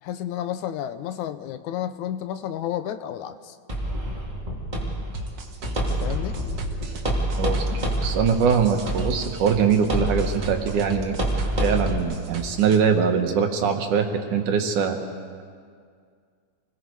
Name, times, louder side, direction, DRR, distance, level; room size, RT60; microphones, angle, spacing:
voice 1, 0.0-3.6 5.9-6.4, left 11 dB, 80° left, 11 dB, 2.0 m, -31 dB
sound 1, 3.7-12.0, right 1 dB, 15° right, 2.8 m, -28 dB
sound 2, 5.1-12.8, right 2 dB, 45° right, 1.3 m, -35 dB
voice 2, 7.4-11.2 11.6-15.0, right 6 dB, 75° right, 4 dB, 3.0 m, -22 dB
29.0 x 21.0 x 4.7 m, 2.1 s
omnidirectional pair, 3.6 m